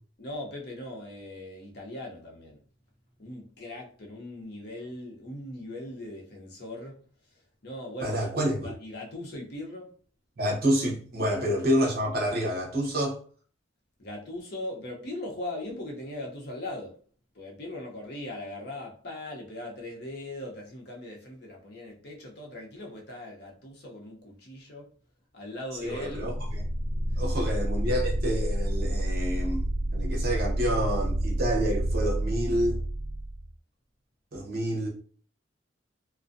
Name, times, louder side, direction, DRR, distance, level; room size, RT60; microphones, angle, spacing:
voice 1, 0.2-2.6 3.2-7.0 7.2-9.9 14.0-17.0 17.3-24.9 25.3-26.3 27.1-27.5, left 1 dB, 60° left, 0.7 m, -40 dB
voice 2, 8.0-8.7 10.4-13.2 25.8-26.3 27.2-29.6 29.9-32.8 34.3-34.9, equal, 55° right, 0.8 m, -28 dB
sound 1, 26.0-33.5, right 1 dB, 70° right, 0.3 m, -29 dB
2.5 x 2.1 x 2.5 m
head